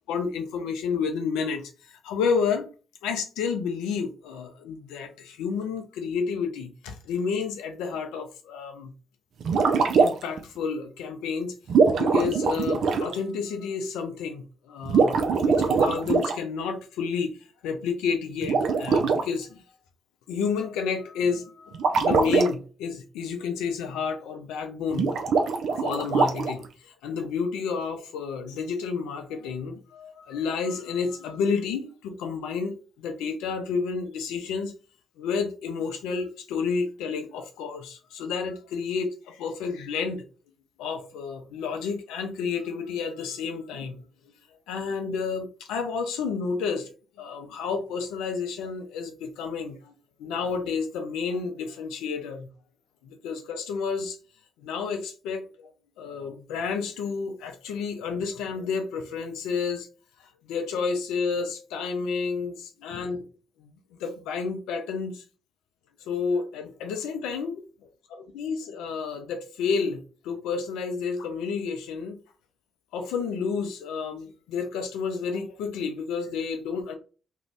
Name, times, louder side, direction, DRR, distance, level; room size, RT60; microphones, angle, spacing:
voice 1, 0.1-1.7 2.0-2.7 3.0-8.9 10.0-11.5 11.9-17.4 17.6-19.6 20.3-25.1 25.7-34.7 35.2-40.2 40.8-44.0 44.7-46.9 47.2-49.9 50.2-52.5 53.0-54.2 54.6-55.7 56.0-59.9 60.4-63.2 63.6-63.7 64.0-65.2 66.0-67.6 68.1-72.2 72.9-76.9, left 5 dB, 80° left, 0.5 m, -30 dB
sound 1, 9.4-10.4 11.7-13.1 14.8-16.4 18.4-19.2 21.7-22.5 24.9-26.7, right 5 dB, 65° right, 0.4 m, -22 dB
2.5 x 2.3 x 3.2 m
hypercardioid pair, 45°, 0 cm